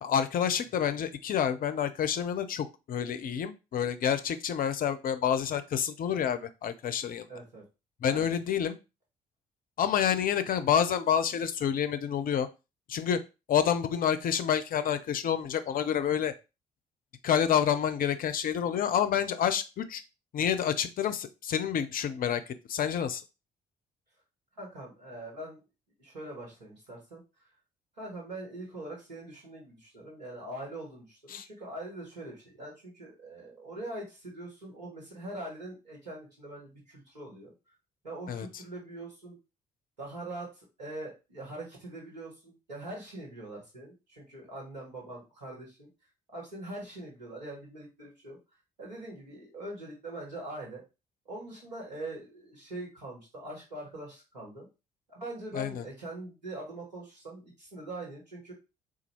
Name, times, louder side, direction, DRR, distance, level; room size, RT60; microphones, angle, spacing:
voice 1, 0.0-7.3 8.0-8.8 9.8-12.5 12.9-13.2 13.5-16.3 17.2-20.0 20.3-23.2 31.3-31.5 38.3-38.5 55.5-55.8, left 8 dB, 45° left, 11 dB, 0.5 m, -28 dB
voice 2, 7.3-7.6 8.1-8.3 24.6-25.6 26.0-27.2 28.0-37.5 38.0-39.4 40.0-45.9 46.3-48.4 48.8-50.8 51.2-54.7 55.1-58.5, right 1 dB, 85° right, -3 dB, 1.4 m, -42 dB
4.0 x 2.5 x 4.3 m, 0.28 s
figure-of-eight pair, 45°, 21 cm